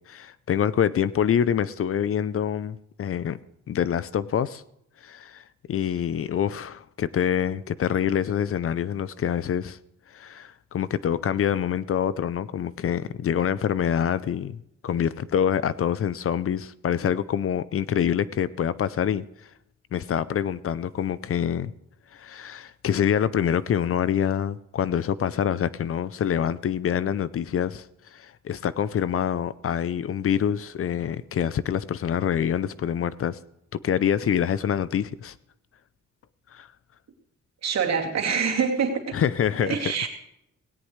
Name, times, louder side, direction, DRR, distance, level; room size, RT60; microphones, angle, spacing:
voice 1, 0.1-3.4 3.7-4.6 5.0-9.8 10.1-19.2 19.9-21.7 22.1-27.9 28.1-33.4 33.7-35.3 36.5-36.7 39.1-39.8, left 9 dB, 50° left, 17 dB, 0.5 m, -26 dB
voice 2, 37.6-39.2 39.6-40.1, right 6 dB, 60° right, 1 dB, 2.6 m, -25 dB
17.5 x 17.5 x 3.2 m, 0.79 s
wide cardioid pair, 155°, 30 cm